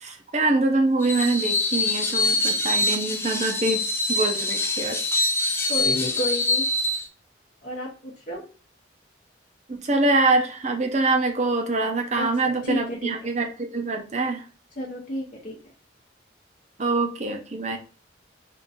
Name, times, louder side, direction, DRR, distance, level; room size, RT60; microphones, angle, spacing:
voice 1, 0.0-5.1 9.7-14.4 16.8-17.8, right 3 dB, 35° right, 4 dB, 0.6 m, -24 dB
Screech, 1.0-7.1, left 2 dB, 10° left, 0.4 m, -24 dB
voice 2, 5.7-6.7 7.6-8.4 12.1-13.3 14.8-15.6, equal, 40° left, -4 dB, 0.8 m, -31 dB
3.7 x 2.6 x 4.0 m, 0.36 s
head